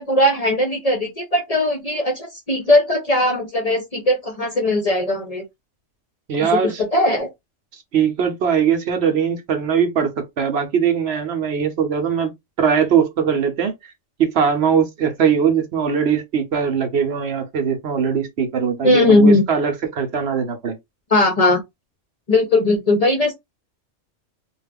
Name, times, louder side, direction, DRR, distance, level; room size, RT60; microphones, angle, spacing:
voice 1, 0.0-5.4 6.4-7.3 18.8-19.4 21.1-21.6 22.3-23.3, left 2 dB, 40° left, 0.7 m, -18 dB
voice 2, 6.3-6.8 7.9-12.3 12.6-13.7 14.2-20.8, right 7 dB, 65° right, 0.9 m, -20 dB
2.5 x 2.3 x 3.4 m
omnidirectional pair, 1.3 m